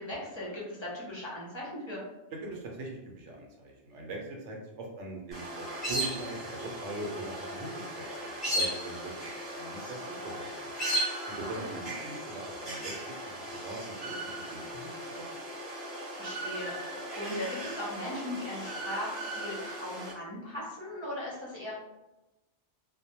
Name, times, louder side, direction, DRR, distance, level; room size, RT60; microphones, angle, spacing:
voice 1, 0.0-2.0 11.6-11.7 16.1-21.7, left 1 dB, 35° left, -6 dB, 0.5 m, -38 dB
voice 2, 2.4-10.5 11.3-12.9 13.3-15.3, right 2 dB, 75° right, 0 dB, 0.9 m, -41 dB
sound 1, 5.3-20.1, right 1 dB, ahead, 0.7 m, -37 dB
2.1 x 2.1 x 2.8 m, 0.99 s
omnidirectional pair, 1.2 m